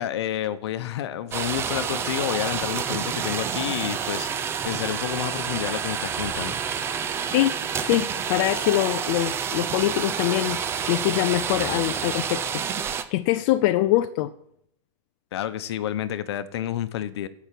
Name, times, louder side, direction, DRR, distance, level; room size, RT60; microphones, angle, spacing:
voice 1, 0.0-6.6 15.3-17.3, left 11 dB, 60° left, 13 dB, 1.0 m, -29 dB
sound 1, 1.3-13.0, right 7 dB, 15° right, 0.6 m, -29 dB
voice 2, 7.9-10.6 10.9-12.6 13.1-14.3, left 15 dB, 35° left, 9 dB, 0.5 m, -23 dB
15.0 x 6.0 x 7.7 m, 0.74 s
supercardioid pair, 155°, 16 cm